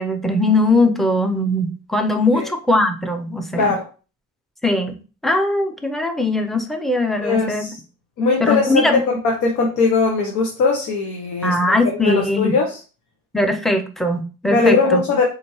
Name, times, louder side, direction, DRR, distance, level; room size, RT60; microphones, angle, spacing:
voice 1, 0.0-3.8 4.6-5.0 5.2-7.7 8.4-9.0 11.4-12.5 13.3-15.0, left 1 dB, ahead, 6 dB, 0.6 m, -20 dB
voice 2, 3.5-3.9 7.2-7.7 8.2-11.7 12.0-12.8 14.5-15.2, left 4 dB, 85° left, 0 dB, 0.9 m, -19 dB
4.3 x 2.6 x 3.0 m, 0.34 s
cardioid pair, 90°, 30 cm